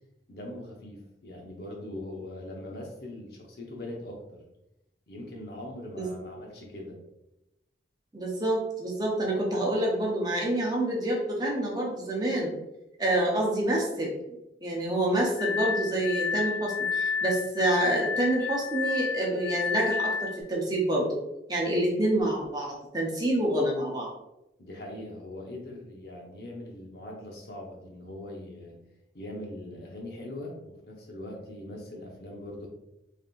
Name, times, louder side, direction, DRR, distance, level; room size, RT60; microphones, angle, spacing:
voice 1, 0.3-4.4 5.1-7.0 24.6-28.8 29.1-32.7, left 1 dB, 65° left, -1 dB, 1.0 m, -41 dB
voice 2, 8.1-12.5 13.0-14.1 14.6-21.2 21.5-24.1, right 1 dB, 20° right, -2 dB, 0.8 m, -27 dB
Glass, 15.4-20.4, left 6 dB, 40° left, 0.8 m, -31 dB
4.1 x 3.5 x 2.5 m, 0.89 s
head